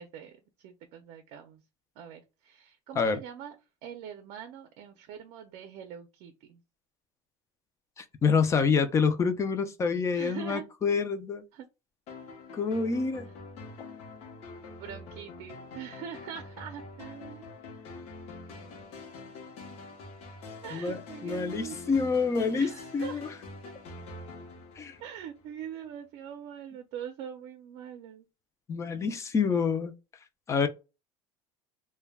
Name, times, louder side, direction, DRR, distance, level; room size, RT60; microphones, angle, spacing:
voice 1, 0.0-1.6 2.0-3.6 3.8-6.6 10.1-10.6 11.5-11.7 13.3-13.4 14.8-17.4 20.6-21.8 22.5-23.2 25.0-28.3 29.1-29.3, right 9 dB, 60° right, 0.5 m, -43 dB
voice 2, 8.0-11.4 12.5-13.3 20.7-23.3 24.8-25.0 28.7-29.9 30.5-30.7, left 5 dB, 20° left, 0.4 m, -27 dB
sound 1, 12.1-25.6, left 3 dB, 55° left, 0.8 m, -45 dB
2.2 x 2.1 x 3.3 m
cardioid pair, 135°, 13 cm